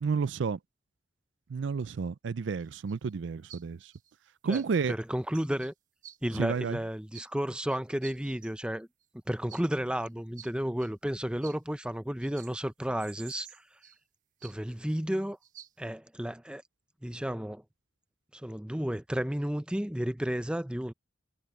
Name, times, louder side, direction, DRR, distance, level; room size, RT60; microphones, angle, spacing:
voice 1, 0.0-0.6 1.5-3.9 4.4-5.0 6.3-6.8, right 5 dB, 70° right, 0.4 m, -31 dB
sound 1, 2.6-3.1 3.5-3.6 3.9-4.1 4.5-4.9 5.2-5.7 6.0-6.2 7.1-7.3 7.6-8.5 9.0-9.1 9.5-9.6 10.0-10.1 10.4-10.5 10.8-10.9 11.4-11.6 12.2-12.5 12.8-14.0 14.4-14.7 15.4-15.7, right 10 dB, 45° right, 1.2 m, -50 dB
voice 2, 4.9-5.7 6.2-8.9 9.3-13.5 14.4-15.4 15.8-16.6 17.0-17.6 18.3-20.9, equal, 5° right, 0.6 m, -32 dB
head